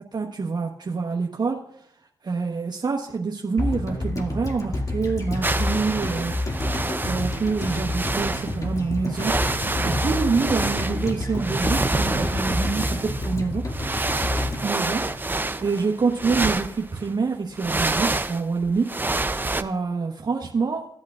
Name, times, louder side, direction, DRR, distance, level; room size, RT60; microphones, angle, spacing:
voice 1, 0.1-1.6 2.2-6.3 7.0-9.3 9.8-13.6 14.6-18.9 19.6-20.9, right 4 dB, 50° right, 0 dB, 1.2 m, -26 dB
sound 1, 3.6-15.8 16.0-16.1, left 1 dB, 40° left, 2.3 m, -29 dB
sound 2, 5.4-8.6 9.1-17.1 17.5-19.6, right 2 dB, 20° right, 0.7 m, -27 dB
16.0 x 8.5 x 2.5 m, 0.68 s
supercardioid pair, 45°, 9 cm